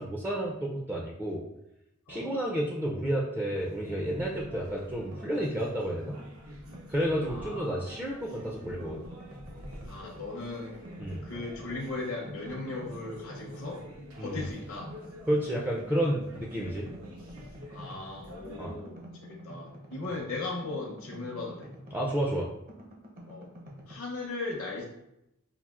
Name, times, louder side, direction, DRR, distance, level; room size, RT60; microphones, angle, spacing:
voice 1, 0.0-1.4 2.1-6.2 6.9-9.0 11.0-11.3 14.2-14.4 15.3-16.9 18.6-18.7 21.9-22.5, right 1 dB, 10° right, -3 dB, 0.4 m, -31 dB
voice 2, 2.1-2.4 7.2-7.9 9.9-10.7 11.2-13.8 14.2-14.9 17.7-21.7 23.2-23.5 23.9-24.9, left 3 dB, 65° left, -3 dB, 0.6 m, -38 dB
sound 1, 3.4-18.8, equal, 80° right, 0.9 m, -47 dB
sound 2, 4.9-5.9 6.2-7.9 8.3-10.1 10.3-12.1 12.4-13.9 14.3-16.0 16.3-20.3 20.6-24.0, equal, 40° right, 0.7 m, -49 dB
5.5 x 2.4 x 2.3 m, 0.85 s
head